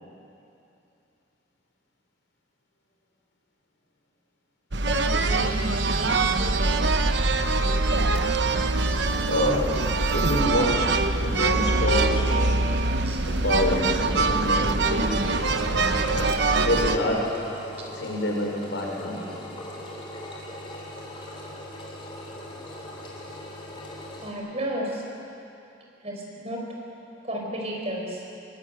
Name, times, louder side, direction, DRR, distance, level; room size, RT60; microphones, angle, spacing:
sound 1, 4.7-17.0, right 3 dB, 60° right, 1.1 m, -23 dB
voice 1, 4.9-5.6 5.9-6.8 13.0-13.2 24.2-25.0 26.0-26.6 27.2-28.2, equal, 30° right, -1 dB, 5.2 m, -33 dB
voice 2, 9.3-9.8 10.1-12.8 13.3-15.2 16.1-17.3 17.9-19.2, left 1 dB, 70° left, -1 dB, 5.4 m, -27 dB
Engine, 15.0-24.3, left 1 dB, 25° left, 3.9 m, -40 dB
23.5 x 21.0 x 9.2 m, 2.7 s
head